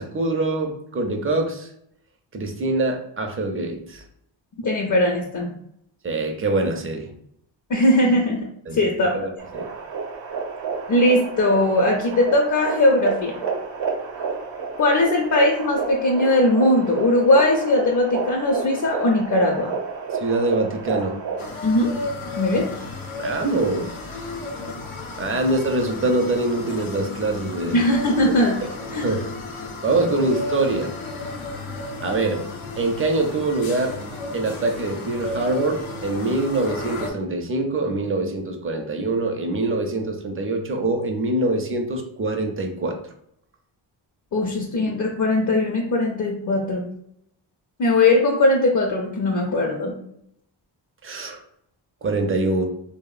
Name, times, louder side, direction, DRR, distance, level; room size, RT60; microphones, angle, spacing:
voice 1, 0.0-1.7 2.3-4.0 6.0-7.1 8.7-8.8 9.1-9.7 20.2-21.2 23.2-23.9 25.2-27.8 29.0-29.2 29.8-30.9 32.0-32.4 32.8-33.9 34.3-43.0 51.0-51.4 52.0-52.6, right 2 dB, 30° right, 4 dB, 0.5 m, -24 dB
voice 2, 4.6-5.5 7.7-9.2 10.9-13.4 14.8-19.7 21.6-21.9 22.4-22.7 25.3-25.4 27.7-28.6 28.9-29.2 44.3-46.9 47.8-50.0, left 1 dB, 45° left, 0 dB, 0.5 m, -20 dB
sound 1, 9.4-21.6, right 5 dB, 65° right, 0.7 m, -30 dB
sound 2, 21.4-37.1, left 2 dB, 85° left, 0.6 m, -33 dB
3.2 x 2.0 x 2.4 m, 0.72 s
cardioid pair, 70°, 46 cm